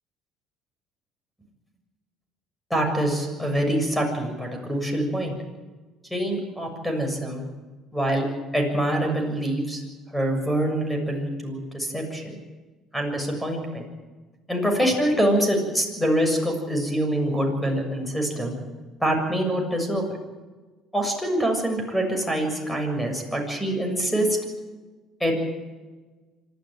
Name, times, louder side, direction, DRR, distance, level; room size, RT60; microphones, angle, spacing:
voice 1, 2.7-5.4 6.1-7.5 7.9-8.3 8.5-9.8 10.1-12.4 12.9-13.9 14.5-18.6 19.0-20.2 20.9-24.4 25.2-25.3, right 1 dB, 5° left, 4 dB, 7.0 m, -25 dB
26.0 x 13.0 x 9.2 m, 1.3 s
supercardioid pair, 95°, 0 cm